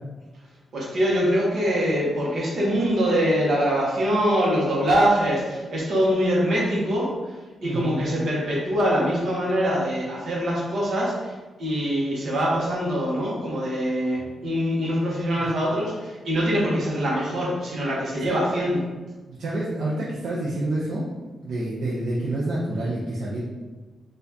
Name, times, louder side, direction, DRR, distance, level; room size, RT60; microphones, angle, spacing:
voice 1, 0.7-7.1 7.6-11.3 11.6-18.8, equal, 55° right, -4 dB, 1.1 m, -23 dB
voice 2, 7.6-8.0 18.2-18.4 19.3-21.0 21.4-23.4, right 1 dB, 80° right, -7 dB, 0.6 m, -28 dB
4.1 x 2.5 x 2.8 m, 1.2 s
wide cardioid pair, 160°, 0 cm